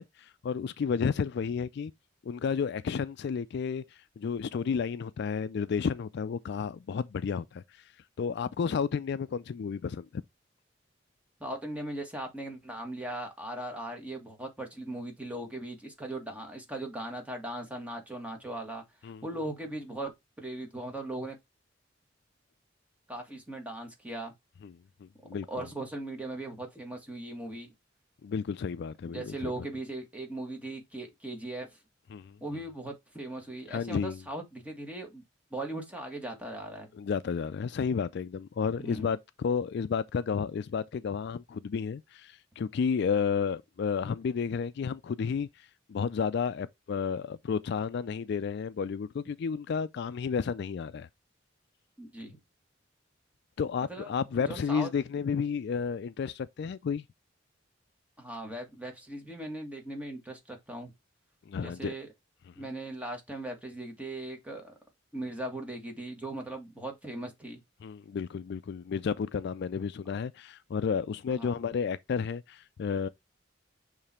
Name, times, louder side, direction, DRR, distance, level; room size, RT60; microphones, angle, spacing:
voice 1, 0.0-1.9 2.2-7.6 8.2-10.1 19.0-19.2 24.6-24.7 25.0-25.6 28.2-29.5 32.1-32.4 33.7-34.2 36.9-51.1 53.6-57.0 61.5-61.9 62.6-62.7 67.8-73.1, left 6 dB, 60° left, 0.3 m, -32 dB
voice 2, 11.4-18.8 19.2-21.4 23.1-24.3 25.5-27.7 29.1-31.8 32.4-35.2 35.5-36.9 38.8-39.1 52.0-52.4 53.9-54.1 54.4-54.9 58.2-60.9 61.6-62.1 62.6-64.7 65.1-67.6 71.3-71.7, right 1 dB, 10° right, 1.6 m, -39 dB
6.8 x 3.3 x 4.2 m
head